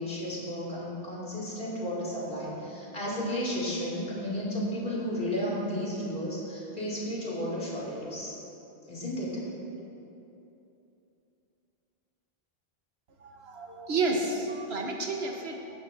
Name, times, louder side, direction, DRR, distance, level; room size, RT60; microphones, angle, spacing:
voice 1, 0.0-8.3 8.9-9.4, equal, 65° left, -6 dB, 2.9 m, -33 dB
voice 2, 13.2-15.6, right 3 dB, 80° right, 1 dB, 1.4 m, -31 dB
15.0 x 11.0 x 2.7 m, 2.9 s
omnidirectional pair, 1.0 m